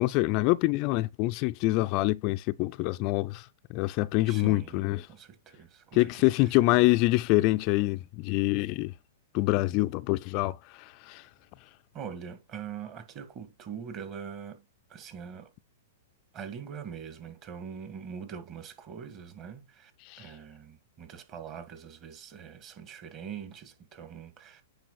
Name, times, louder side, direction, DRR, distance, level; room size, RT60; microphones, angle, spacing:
voice 1, 0.0-5.1 5.9-8.9 9.3-11.2 20.1-20.2, left 20 dB, 40° left, 0.4 m, -26 dB
voice 2, 4.2-6.6 11.9-14.6 14.9-15.5 16.3-19.9 20.2-24.6, right 7 dB, 35° right, 2.1 m, -43 dB
9.2 x 4.9 x 4.2 m
hypercardioid pair, 135°, 0 cm